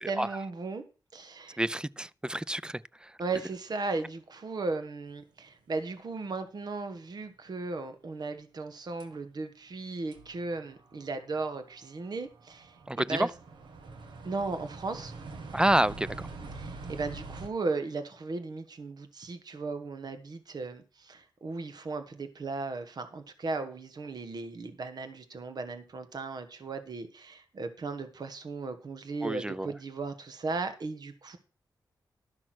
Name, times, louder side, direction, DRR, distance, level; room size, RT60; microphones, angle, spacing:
voice 1, 0.1-0.8 1.1-1.6 3.2-13.3 14.2-15.1 16.5-31.4, right 3 dB, 60° right, 1.6 m, -36 dB
voice 2, 1.6-3.1 12.9-13.3 15.5-16.3 29.2-29.7, right 1 dB, 10° right, 0.5 m, -28 dB
sound 1, 6.3-6.4 9.0-9.1 9.7-9.8 10.1-17.5, right 3 dB, 85° right, 1.4 m, -45 dB
12.5 x 6.0 x 6.1 m
cardioid pair, 55°, 8 cm